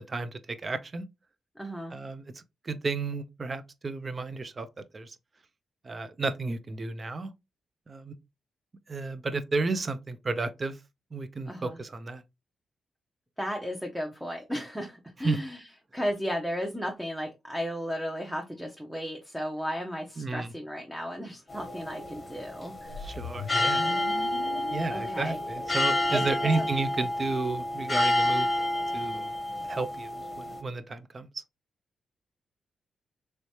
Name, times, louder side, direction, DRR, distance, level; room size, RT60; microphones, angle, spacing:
voice 1, 0.1-1.1 1.9-4.7 4.9-5.2 5.8-7.3 7.9-8.1 8.9-10.8 11.1-12.2 15.2-15.4 20.2-20.5 23.0-23.8 24.7-28.5 28.9-31.4, right 3 dB, 40° right, 0.5 m, -32 dB
voice 2, 1.6-1.9 11.5-11.8 13.4-15.6 15.9-23.0 24.9-25.4 26.1-26.6, equal, 5° right, 0.7 m, -34 dB
sound 1, 21.5-30.6, left 1 dB, 30° left, 0.8 m, -29 dB
sound 2, 22.9-27.1, left 6 dB, 85° left, 0.3 m, -42 dB
3.1 x 3.1 x 2.7 m
cardioid pair, 65°, 0 cm